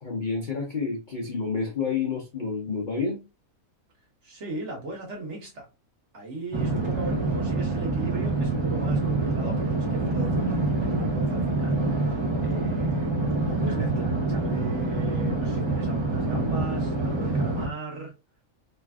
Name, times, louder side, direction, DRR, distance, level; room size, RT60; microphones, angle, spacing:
voice 1, 0.0-3.2, left 5 dB, 50° left, 0.6 m, -29 dB
voice 2, 4.2-5.7 6.1-13.1 13.4-18.1, right 2 dB, 60° right, 1.3 m, -38 dB
sound 1, 6.5-17.7, right 2 dB, 35° right, 0.4 m, -26 dB
3.2 x 2.4 x 2.2 m
omnidirectional pair, 1.4 m